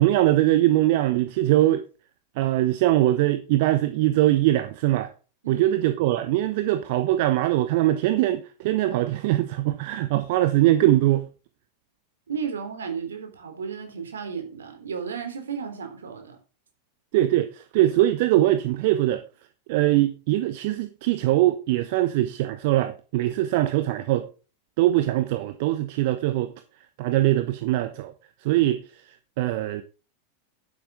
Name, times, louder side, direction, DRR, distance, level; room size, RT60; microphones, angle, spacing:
voice 1, 0.0-1.8 2.4-5.1 5.5-11.3 17.1-19.2 19.7-24.3 24.8-26.5 27.0-28.1 28.4-28.8 29.4-29.8, right 15 dB, 50° right, 1.1 m, -22 dB
voice 2, 12.3-16.4, right 6 dB, 65° right, 3.8 m, -33 dB
11.5 x 10.5 x 3.8 m
figure-of-eight pair, 90°, 0 cm